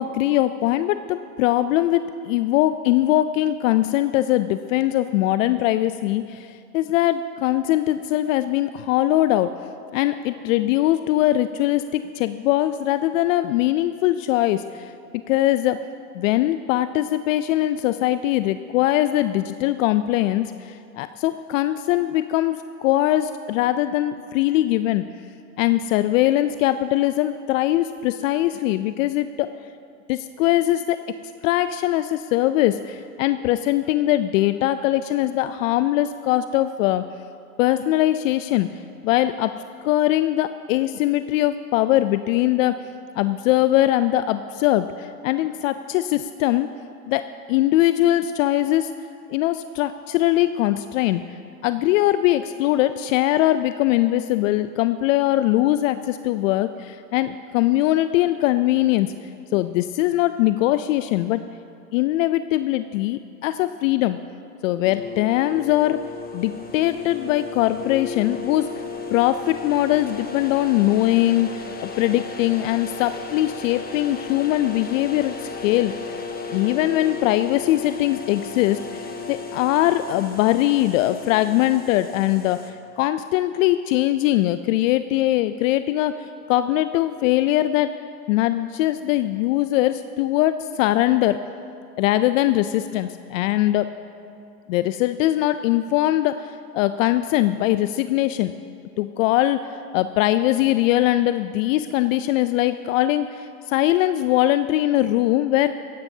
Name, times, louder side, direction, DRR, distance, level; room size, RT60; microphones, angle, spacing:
voice 1, 0.0-9.5 9.9-14.9 15.3-15.9 16.1-25.1 25.6-29.5 30.1-31.0 31.4-37.1 37.6-38.7 39.0-39.6 39.8-42.9 43.1-46.7 47.1-48.9 49.3-59.1 59.5-61.5 61.9-64.2 64.6-66.0 66.3-68.7 69.1-76.0 76.5-88.0 88.3-91.4 92.0-93.9 94.7-98.5 99.0-105.7, left 14 dB, 60° left, 11 dB, 0.5 m, -21 dB
sound 1, 64.8-82.7, left 4 dB, 20° left, 1.3 m, -35 dB
17.0 x 15.5 x 2.8 m, 2.5 s
hypercardioid pair, 105°, 46 cm